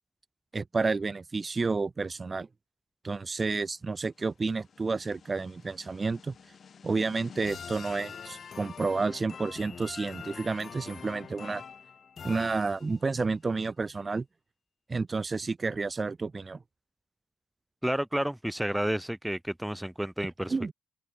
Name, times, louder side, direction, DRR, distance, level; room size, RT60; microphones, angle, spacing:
voice 1, 0.5-2.5 3.0-6.3 6.8-11.6 12.2-14.2 14.9-16.6 20.5-20.7, right 4 dB, 30° right, 4.9 m, -30 dB
sound 1, 4.3-13.2, left 6 dB, 50° left, 7.5 m, -45 dB
voice 2, 17.8-20.7, right 1 dB, 5° right, 4.4 m, -31 dB
cardioid pair, 90°, 0 cm